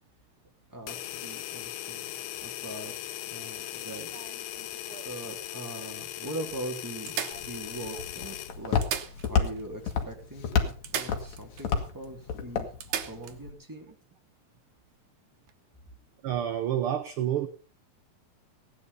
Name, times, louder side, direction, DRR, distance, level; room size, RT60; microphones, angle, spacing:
voice 1, 0.7-2.2 2.4-4.1 4.5-4.7 5.0-12.7 13.0-14.0, right 1 dB, 5° right, 1 dB, 2.7 m, -41 dB
sound 1, 0.9-8.6, left 13 dB, 85° left, 2.4 m, -39 dB
sound 2, 3.6-5.2 5.9-6.0 6.2-6.3 7.1-8.1 8.7-9.7 9.9-10.0 10.8-11.7 12.0-12.1 12.8-13.4 15.4-15.5, right 9 dB, 80° right, 2.7 m, -37 dB
Walk footsteps, 7.3-13.5, left 6 dB, 65° left, 2.9 m, -31 dB
voice 2, 16.2-17.5, right 10 dB, 65° right, 9 dB, 1.4 m, -29 dB
17.0 x 9.7 x 5.4 m, 0.38 s
omnidirectional pair, 3.5 m